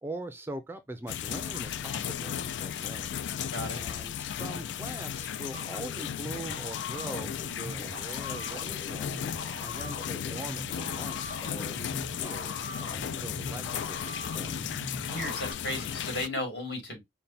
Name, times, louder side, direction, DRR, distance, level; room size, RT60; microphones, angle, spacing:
voice 1, 0.0-3.4 3.8-9.2 9.6-14.6, right 1 dB, 15° right, 0.4 m, -42 dB
sound 1, 1.1-16.3, left 9 dB, 80° left, 0.3 m, -35 dB
voice 2, 3.5-3.8 15.0-17.0, left 1 dB, 60° left, 2.4 m, -35 dB
sound 2, 5.5-15.5, left 2 dB, 40° left, 2.0 m, -41 dB
5.3 x 2.2 x 4.2 m
head